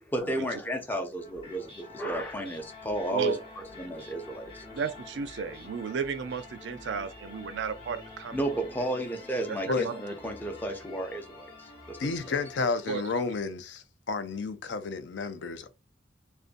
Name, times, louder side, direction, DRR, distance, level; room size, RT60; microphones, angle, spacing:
voice 1, 0.1-3.4 3.8-4.6 8.3-12.4, right 1 dB, 10° left, 0.5 m, -33 dB
sound 1, 1.2-13.4, left 2 dB, 35° left, 0.8 m, -48 dB
voice 2, 3.1-3.4 4.7-8.6 9.8-10.0 12.9-13.0, right 5 dB, 70° right, 0.4 m, -34 dB
voice 3, 12.0-15.7, left 4 dB, 75° left, 0.4 m, -31 dB
2.5 x 2.3 x 2.5 m
head